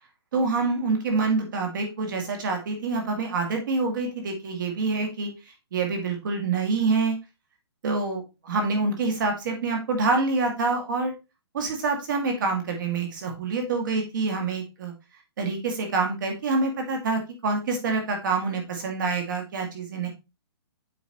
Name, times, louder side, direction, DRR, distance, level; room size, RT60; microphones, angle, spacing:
voice 1, 0.3-5.3 5.7-7.2 7.8-11.1 11.5-14.9 15.4-20.1, right 3 dB, 45° right, 3 dB, 2.1 m, -26 dB
8.3 x 5.5 x 3.0 m, 0.26 s
hypercardioid pair, 170°, 14 cm